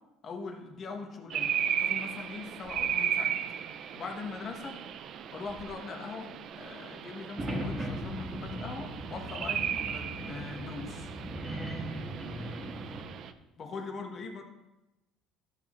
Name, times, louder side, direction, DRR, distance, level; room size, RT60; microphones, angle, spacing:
voice 1, 0.2-1.5 1.8-3.4 3.9-4.8 5.3-11.1 13.6-14.4, left 4 dB, 35° left, 3 dB, 1.2 m, -41 dB
sound 1, 1.3-13.3, right 9 dB, 50° right, 0.5 m, -36 dB
sound 2, 7.4-13.0, right 1 dB, 20° right, 1.3 m, -38 dB
13.0 x 6.3 x 3.1 m, 0.99 s
cardioid pair, 140°, 0 cm